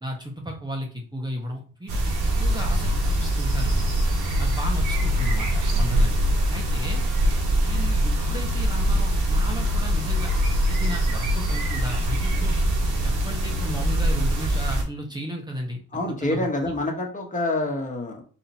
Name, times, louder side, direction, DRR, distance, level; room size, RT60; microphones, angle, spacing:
voice 1, 0.0-2.0 2.4-3.9 4.4-6.2 6.5-7.0 7.6-10.3 10.7-12.6 13.0-15.8 16.1-16.5, equal, 15° right, 0 dB, 0.9 m, -34 dB
sound 1, 1.9-14.8, equal, 80° right, 1.6 m, -23 dB
voice 2, 15.9-18.2, left 2 dB, 25° left, 1 dB, 1.3 m, -27 dB
4.2 x 2.9 x 4.1 m, 0.40 s
cardioid pair, 90°, 30 cm